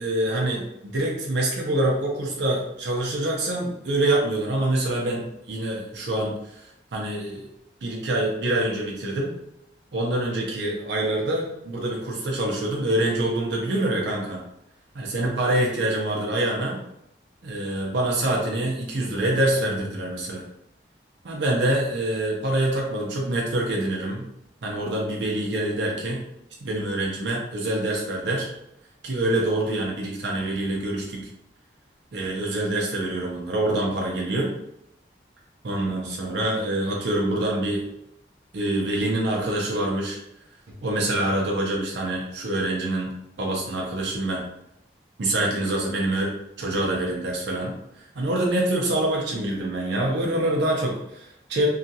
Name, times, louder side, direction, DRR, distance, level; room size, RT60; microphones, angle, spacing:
voice 1, 0.0-7.4 7.8-9.3 9.9-14.4 14.9-16.8 17.4-20.4 21.2-24.3 24.6-26.2 26.6-28.5 29.0-31.3 32.1-34.5 35.6-37.8 38.5-40.2 40.8-43.1 43.4-44.4 45.2-46.3 46.6-47.7 48.1-51.7, right 1 dB, 80° right, -2 dB, 0.6 m, -25 dB
2.7 x 2.4 x 2.7 m, 0.82 s
head